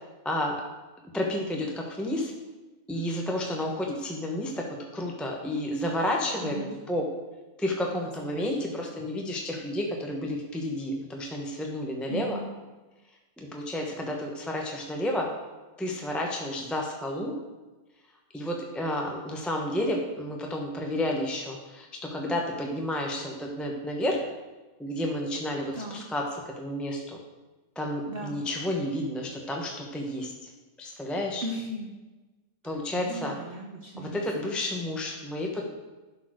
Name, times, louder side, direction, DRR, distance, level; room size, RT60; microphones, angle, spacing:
voice 1, 0.2-0.5 1.1-2.3 2.9-7.0 7.6-12.4 13.4-15.3 15.8-17.3 18.3-24.2 24.8-27.2 27.7-30.5 30.8-31.4 32.6-33.3 34.0-35.6, left 1 dB, ahead, 0 dB, 0.8 m, -31 dB
voice 2, 6.4-6.7 7.9-9.0 12.1-12.5 25.7-26.0 28.1-28.4 31.4-31.9 32.6-34.5, right 1 dB, 45° right, 1 dB, 0.9 m, -38 dB
11.5 x 4.7 x 6.3 m, 1.2 s
omnidirectional pair, 1.6 m